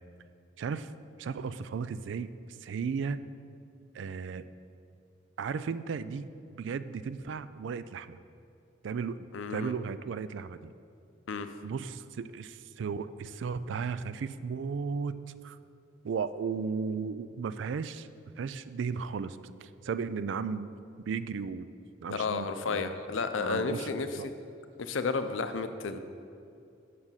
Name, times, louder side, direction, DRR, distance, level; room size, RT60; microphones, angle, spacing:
voice 1, 0.6-0.9 1.2-3.2 3.9-4.4 5.4-8.2 8.8-10.7 11.6-15.2 15.4-15.6 16.0-18.1 18.4-20.7 21.0-21.7 22.0-23.0 23.4-24.3, right 5 dB, 65° right, 14 dB, 0.3 m, -35 dB
voice 2, 9.3-9.8 11.3-11.5 22.1-24.1 24.8-26.0, left 4 dB, 80° left, 9 dB, 0.5 m, -32 dB
7.2 x 6.4 x 5.6 m, 2.6 s
head